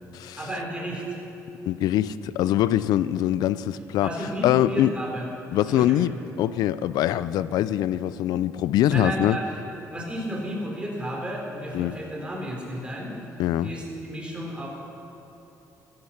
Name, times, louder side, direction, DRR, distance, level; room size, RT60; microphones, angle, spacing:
voice 1, 0.2-1.0 4.0-5.3 5.7-6.0 8.9-13.1 13.6-14.7, right 1 dB, 15° right, -2 dB, 3.9 m, -32 dB
voice 2, 1.7-4.1 4.4-4.9 5.5-6.1 6.4-9.4 11.7-12.0 13.4-13.7, left 12 dB, 85° left, 16 dB, 0.5 m, -23 dB
14.5 x 14.5 x 5.9 m, 2.8 s
cardioid pair, 115°, 7 cm